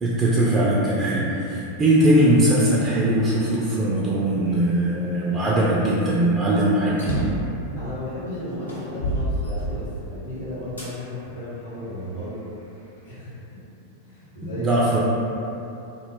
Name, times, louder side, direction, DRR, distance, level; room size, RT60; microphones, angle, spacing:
voice 1, 0.0-7.0 14.4-15.0, right 1 dB, 20° right, -6 dB, 0.3 m, -20 dB
sound 1, 7.0-7.5 8.1-8.2 8.7-10.1 10.8-10.9 11.6-12.7, right 1 dB, 75° left, 0.5 m, -27 dB
voice 2, 7.8-12.4 13.0-13.7 14.0-14.8, left 1 dB, 55° left, -11 dB, 1.0 m, -34 dB
2.1 x 2.0 x 3.3 m, 2.9 s
figure-of-eight pair, 90°, 0 cm